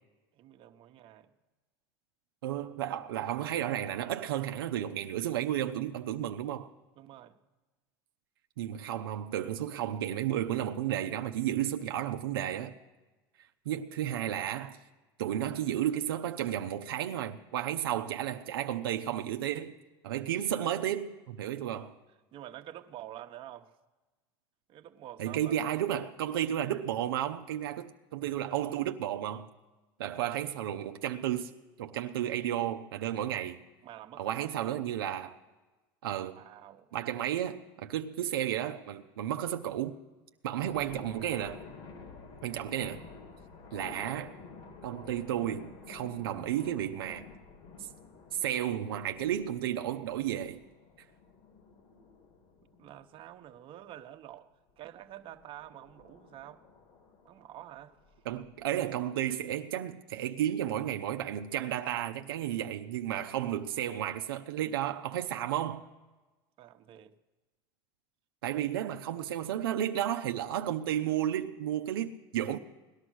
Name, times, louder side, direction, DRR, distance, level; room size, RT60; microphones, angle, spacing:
voice 1, 0.3-1.3 7.0-7.4 22.3-23.7 24.7-25.7 33.8-34.9 36.3-36.9 52.8-54.5 54.8-56.6 57.2-58.0 66.6-67.1 68.8-69.7, right 12 dB, 50° right, 1.0 m, -48 dB
voice 2, 2.4-6.7 8.6-12.7 13.7-14.8 15.2-19.7 20.0-21.9 25.2-29.5 30.0-31.5 31.8-33.6 34.2-35.4 36.0-36.4 36.9-40.0 40.4-41.6 42.4-43.0 43.7-44.3 44.8-47.3 47.8-47.9 48.3-50.6 58.3-65.8 68.4-72.6, right 11 dB, 90° right, 0.7 m, -33 dB
sound 1, 40.6-53.6 55.0-58.6, left 4 dB, 60° left, 2.8 m, -51 dB
18.5 x 11.5 x 6.2 m
supercardioid pair, 105°, 12 cm